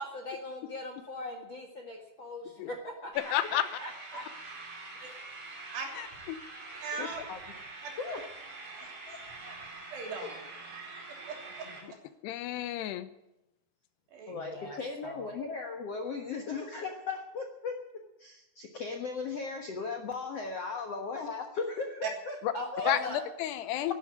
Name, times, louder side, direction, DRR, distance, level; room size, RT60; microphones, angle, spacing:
voice 1, 0.0-4.3 4.9-5.5 11.6-11.9 14.3-15.3 22.5-23.2, left 1 dB, 50° left, 2 dB, 1.5 m, -41 dB
sound 1, 3.1-11.8, right 3 dB, 45° right, 4.1 m, -45 dB
voice 2, 3.3-3.6 6.0-6.4 7.0-7.1 12.2-13.1 22.9-23.9, left 12 dB, 80° left, 12 dB, 2.9 m, -31 dB
voice 3, 6.8-7.2 7.8-7.9 9.9-10.4 11.1-12.0 14.1-14.4 22.0-22.1 22.8-22.9, right 6 dB, 80° right, 2 dB, 5.3 m, -38 dB
voice 4, 8.8-9.5 14.3-17.8 18.2-22.4 22.7-22.9, left 4 dB, 65° left, 3 dB, 1.5 m, -37 dB
12.0 x 11.5 x 9.9 m, 0.93 s
omnidirectional pair, 4.8 m